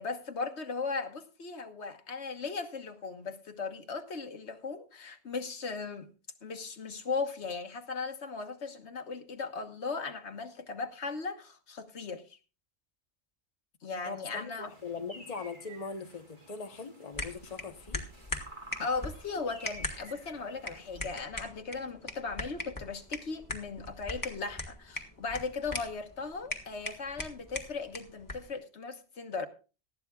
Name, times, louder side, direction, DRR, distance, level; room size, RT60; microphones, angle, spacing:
voice 1, 0.0-6.1 6.4-12.4 13.8-14.7 18.8-29.5, left 4 dB, 85° left, 1.6 m, -37 dB
voice 2, 14.0-18.0, left 4 dB, 35° left, 1.1 m, -41 dB
sound 1, 14.6-21.2, right 1 dB, 45° right, 3.0 m, -52 dB
sound 2, 17.1-28.5, left 1 dB, 15° left, 1.6 m, -41 dB
19.0 x 14.0 x 2.3 m
omnidirectional pair, 1.1 m